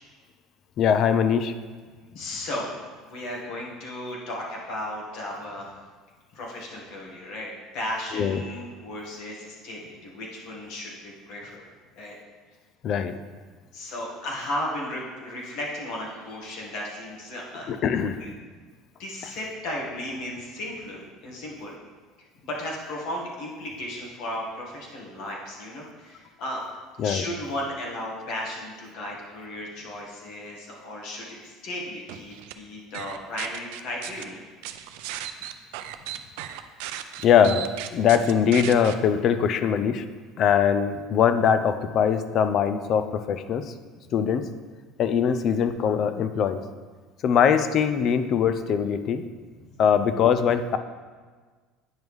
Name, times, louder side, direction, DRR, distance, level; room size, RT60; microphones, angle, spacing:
voice 1, 0.8-1.5 8.1-8.4 12.8-13.2 17.7-18.2 27.0-27.2 37.2-37.7 37.9-40.0 40.4-43.7 44.1-44.5 45.0-46.6 47.2-49.2 49.8-50.8, left 7 dB, 45° left, 10 dB, 0.4 m, -22 dB
voice 2, 2.1-5.8 6.3-11.7 11.9-12.1 13.7-17.7 18.2-18.3 19.0-21.8 22.4-26.6 27.0-34.5, left 1 dB, 60° left, -3 dB, 1.4 m, -35 dB
sound 1, 32.1-32.5 32.9-34.2 34.6-38.9, right 12 dB, 85° right, 0.4 m, -36 dB
9.2 x 5.2 x 3.2 m, 1.4 s
cardioid pair, 135°, 0 cm